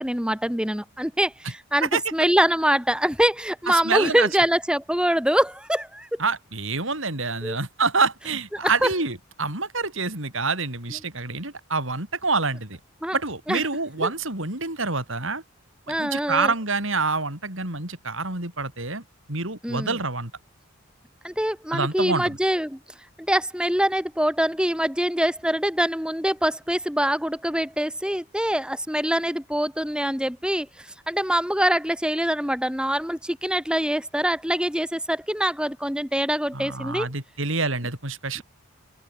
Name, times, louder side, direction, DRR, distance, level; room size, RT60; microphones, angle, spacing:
voice 1, 0.0-6.2 7.4-7.6 8.6-8.9 13.0-13.2 13.5-13.6 14.0-14.1 15.9-16.5 19.6-20.0 21.2-22.8 23.2-37.1, equal, 5° right, 7.3 m, -24 dB
voice 2, 3.7-4.3 6.2-12.8 13.1-15.4 15.9-19.0 19.3-20.3 21.7-22.4 36.5-38.4, right 4 dB, 65° right, 5.4 m, -27 dB
open air
head